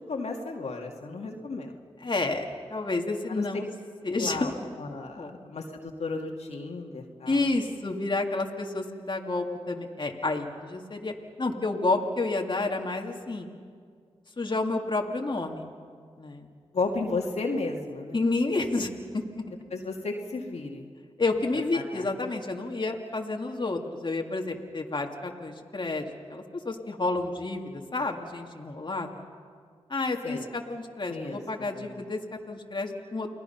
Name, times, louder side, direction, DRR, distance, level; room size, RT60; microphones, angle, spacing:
voice 1, 0.0-1.7 3.3-3.5 4.1-4.5 4.8-7.5 16.7-18.2 19.7-20.9 21.7-22.1 30.2-30.5 31.1-32.0, left 3 dB, 70° left, 1 dB, 2.3 m, -34 dB
voice 2, 2.0-2.4 2.7-3.6 4.0-4.7 5.2-5.4 7.3-13.5 14.4-15.7 16.2-16.5 18.1-19.4 21.2-29.2 29.9-32.2 32.5-33.3, left 2 dB, 40° left, 1 dB, 2.3 m, -30 dB
29.5 x 19.0 x 5.8 m, 2.1 s
cardioid pair, 40°, 12 cm